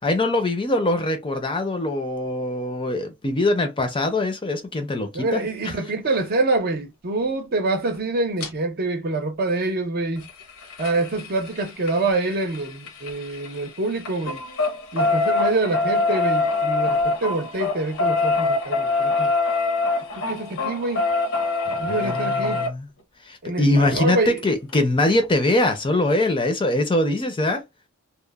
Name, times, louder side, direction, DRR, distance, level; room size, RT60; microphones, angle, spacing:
voice 1, 0.0-5.8 21.7-22.9 23.3-27.6, left 1 dB, 25° left, 0.5 m, -23 dB
voice 2, 5.1-10.3 10.8-14.4 14.9-19.3 20.1-21.1 21.8-22.6 23.4-24.4, right 2 dB, 45° right, 0.6 m, -26 dB
sound 1, 8.4-8.5 10.2-13.7 14.0-22.7 24.4-24.5 24.7-24.8 25.1-25.2, left 3 dB, 70° left, 0.8 m, -24 dB
2.9 x 2.0 x 2.2 m
head